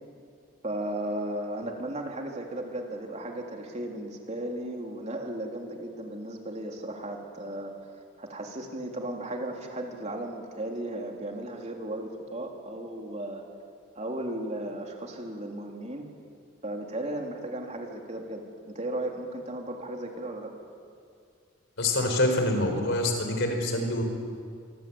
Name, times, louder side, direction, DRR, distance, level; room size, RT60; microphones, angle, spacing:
voice 1, 0.6-7.7 8.2-13.4 13.9-16.1 16.6-20.5, right 1 dB, 30° right, 1 dB, 3.4 m, -35 dB
voice 2, 21.8-24.0, left 1 dB, 55° left, 4 dB, 4.9 m, -26 dB
26.0 x 24.0 x 8.8 m, 2.3 s
head